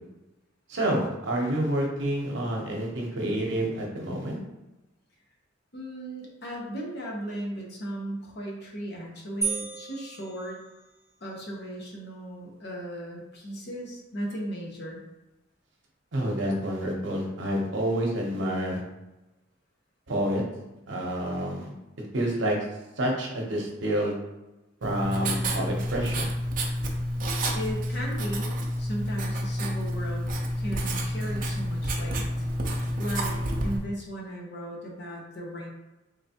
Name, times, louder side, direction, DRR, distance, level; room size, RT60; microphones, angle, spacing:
voice 1, 0.7-4.4 16.1-18.8 20.1-20.4 20.9-21.7 22.1-22.6 23.0-24.1 24.8-26.3, right 1 dB, 65° right, 0 dB, 0.8 m, -28 dB
voice 2, 5.7-10.6 11.2-15.0 27.5-28.5 28.8-30.3 30.6-32.3 32.7-35.7, right 1 dB, 55° left, -1 dB, 0.9 m, -36 dB
sound 1, 9.4-11.2, right 6 dB, 15° left, 1.0 m, -34 dB
Writing, 24.8-33.8, equal, 45° right, 0.5 m, -29 dB
3.8 x 3.3 x 2.8 m, 1.0 s
head